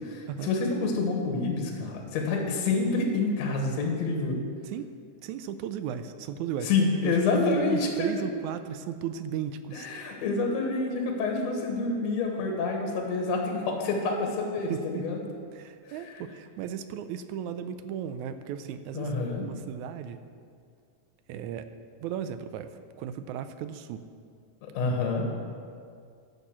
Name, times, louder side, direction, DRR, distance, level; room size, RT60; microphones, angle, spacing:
voice 1, 0.0-4.4 6.6-8.1 9.7-15.2 18.9-19.5 24.6-25.3, left 3 dB, 60° left, 1 dB, 2.3 m, -28 dB
voice 2, 5.2-6.7 7.0-9.9 14.7-15.1 15.5-20.2 21.3-21.7 22.0-22.7 23.0-24.0, right 9 dB, 80° right, 10 dB, 1.9 m, -35 dB
11.5 x 6.6 x 7.5 m, 2.2 s
omnidirectional pair, 3.6 m